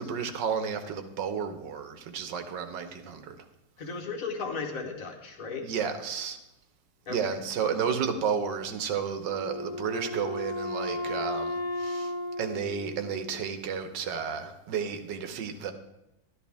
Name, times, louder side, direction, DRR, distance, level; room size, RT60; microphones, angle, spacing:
voice 1, 0.0-3.3 5.6-6.4 7.1-12.1 12.4-15.7, right 6 dB, 80° right, 8 dB, 1.5 m, -32 dB
voice 2, 3.8-5.7 7.1-7.2, left 4 dB, 55° left, 2 dB, 1.5 m, -35 dB
Wind instrument woodwind instrument, 9.3-13.8, left 1 dB, 75° left, 1.9 m, -35 dB
11.5 x 11.5 x 3.4 m, 0.89 s
omnidirectional pair, 1.9 m